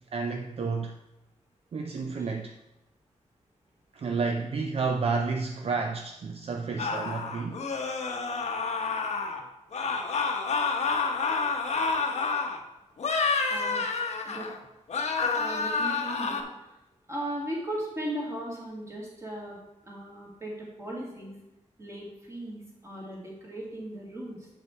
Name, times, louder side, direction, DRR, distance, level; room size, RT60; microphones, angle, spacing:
voice 1, 0.1-1.0 1.7-2.6 3.9-7.6, right 4 dB, 50° right, 4 dB, 0.5 m, -30 dB
sound 1, 6.8-9.4 9.7-12.6 13.0-14.6 14.9-16.4, left 4 dB, 60° left, 0.8 m, -29 dB
voice 2, 13.5-13.8 14.2-14.5 15.4-16.5 17.1-19.6 19.8-21.4 21.8-24.5, right 1 dB, 20° right, -3 dB, 2.0 m, -37 dB
6.9 x 5.7 x 4.4 m, 0.94 s
wide cardioid pair, 165°, 13 cm